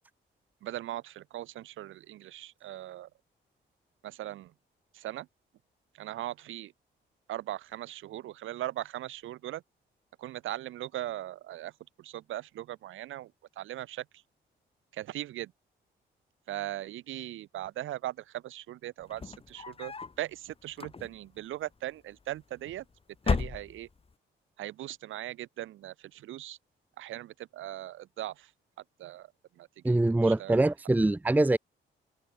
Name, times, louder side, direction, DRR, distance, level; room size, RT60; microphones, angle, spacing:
voice 1, 0.6-3.1 4.0-4.5 4.9-5.3 5.9-6.7 7.3-9.6 10.2-14.2 14.9-15.5 16.5-22.8 23.2-23.9 24.6-26.6 27.0-28.5 29.0-30.6, right 14 dB, 85° right, 5.0 m, -39 dB
sound 1, 19.0-20.2 20.7-21.4 22.3-22.8 23.2-24.1, left 4 dB, 30° left, 2.1 m, -33 dB
voice 2, 29.8-31.6, right 2 dB, 10° right, 0.7 m, -24 dB
open air
cardioid pair, 90°, 20 cm